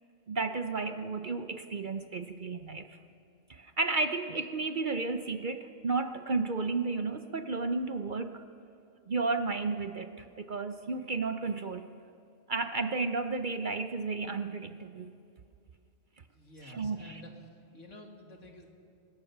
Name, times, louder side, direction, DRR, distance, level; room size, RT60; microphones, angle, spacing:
voice 1, 0.3-3.0 3.5-8.4 9.1-11.9 12.5-15.1 16.6-17.2, right 3 dB, 45° right, 8 dB, 0.7 m, -33 dB
voice 2, 16.3-17.3 17.7-18.7, left 1 dB, 70° left, 2 dB, 2.6 m, -50 dB
24.0 x 20.5 x 5.9 m, 2.4 s
omnidirectional pair, 1.3 m